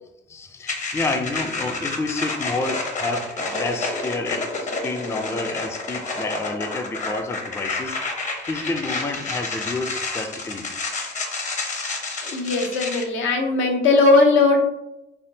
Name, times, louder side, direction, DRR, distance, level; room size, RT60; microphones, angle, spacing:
voice 1, 0.3-10.7, left 3 dB, 15° left, 5 dB, 0.3 m, -29 dB
sound 1, 0.7-13.0, left 3 dB, 40° left, 0.8 m, -29 dB
voice 2, 12.2-14.6, left 3 dB, 80° left, 2 dB, 0.7 m, -18 dB
3.4 x 2.5 x 2.7 m, 0.88 s
cardioid pair, 90°, 20 cm